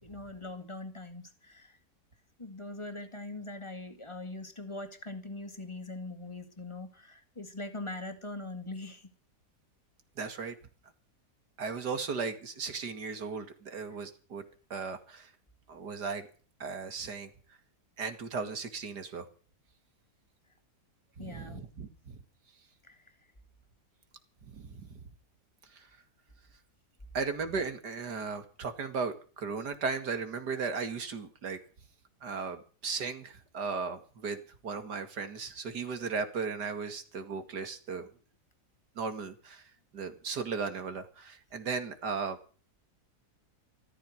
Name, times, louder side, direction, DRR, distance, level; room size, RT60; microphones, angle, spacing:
voice 1, 0.0-1.8 2.4-9.1 13.9-14.0 21.2-21.6 22.8-23.0, left 2 dB, 20° left, 6 dB, 2.0 m, -42 dB
voice 2, 10.2-10.5 11.6-14.4 14.7-15.3 15.7-16.3 16.6-17.3 18.0-19.3 21.2-22.2 24.5-24.9 25.7-25.9 27.1-31.6 32.2-34.4 34.6-38.1 39.0-39.6 39.9-42.4, right 5 dB, 85° right, 9 dB, 2.7 m, -36 dB
14.0 x 14.0 x 6.5 m, 0.39 s
omnidirectional pair, 1.7 m